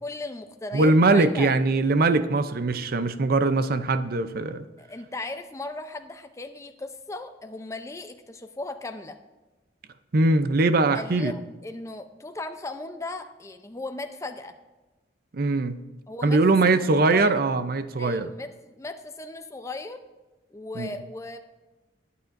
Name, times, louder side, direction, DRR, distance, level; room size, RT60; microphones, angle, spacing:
voice 1, 0.0-1.5 4.8-9.2 10.9-14.5 16.1-16.4 16.7-17.3 18.0-20.0 20.5-21.4, left 2 dB, 15° left, 6 dB, 0.6 m, -37 dB
voice 2, 0.7-4.7 10.1-11.3 15.3-15.8 16.2-18.3 20.8-20.9, right 3 dB, 55° right, 11 dB, 0.6 m, -21 dB
20.5 x 8.5 x 2.6 m, 1.1 s
head